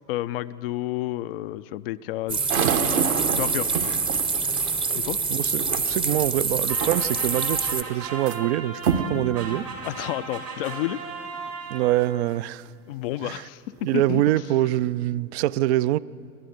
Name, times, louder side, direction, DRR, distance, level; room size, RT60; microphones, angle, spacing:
voice 1, 0.1-2.9 3.3-3.9 4.9-5.2 9.8-11.0 12.9-14.2, left 15 dB, 40° left, 14 dB, 0.4 m, -31 dB
sound 1, 2.3-7.8, right 4 dB, 10° right, 0.7 m, -26 dB
sound 2, 2.5-6.3 6.8-7.3 7.7-8.4 8.8-9.2 9.8-9.9 10.6-10.7 13.2-13.3 13.8-14.4, right 8 dB, 60° right, 1.3 m, -29 dB
voice 2, 5.3-9.7 11.7-12.7 13.2-13.5 13.8-16.0, right 15 dB, 45° right, 19 dB, 0.5 m, -25 dB
sound 3, 6.7-12.2, right 4 dB, 90° right, 6.3 m, -36 dB
28.5 x 11.5 x 8.1 m, 2.4 s
figure-of-eight pair, 95°, 47 cm